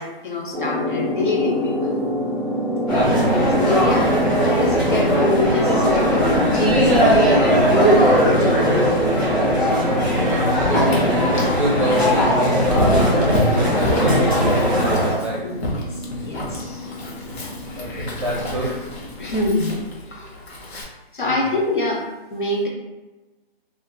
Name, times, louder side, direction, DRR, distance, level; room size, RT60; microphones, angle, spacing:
voice 1, 0.0-2.0 3.6-4.1 4.4-7.4 7.7-9.0 12.7-12.8 13.5-13.7 15.4-16.9 17.7-18.1 19.2-20.3 21.1-22.0 22.3-22.7, left 2 dB, 55° left, -1 dB, 0.7 m, -25 dB
sound 1, 0.5-19.8, left 1 dB, 10° right, 0.9 m, -28 dB
sound 2, 2.9-15.1, equal, 20° left, 0.9 m, -18 dB
voice 2, 2.9-3.8 9.7-15.4 17.8-18.9 21.2-21.3, right 1 dB, 35° right, -4 dB, 0.5 m, -28 dB
Dog, 10.3-20.8, left 1 dB, 85° left, 0.8 m, -28 dB
2.6 x 2.4 x 2.2 m, 1.2 s
hypercardioid pair, 165°, 31 cm